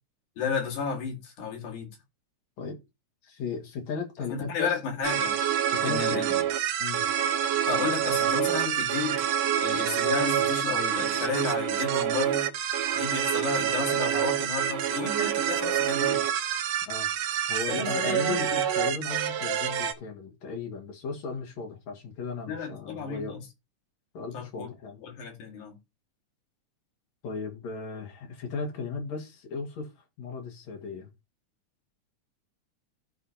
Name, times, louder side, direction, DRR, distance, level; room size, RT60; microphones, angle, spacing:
voice 1, 0.4-1.9 4.3-5.4 5.8-6.4 7.7-9.2 9.6-12.5 12.9-16.2 17.7-18.6 22.5-23.5 24.3-24.7 25.0-25.8, left 5 dB, 85° left, 3.5 m, -33 dB
voice 2, 3.2-4.8 5.7-6.4 6.8-7.1 16.9-17.1 17.5-23.4 24.1-25.0 27.2-29.9 30.2-31.1, left 4 dB, 65° left, 3.0 m, -36 dB
sound 1, 5.0-19.9, right 10 dB, 70° right, 1.8 m, -27 dB
14.5 x 4.9 x 2.8 m
omnidirectional pair, 3.5 m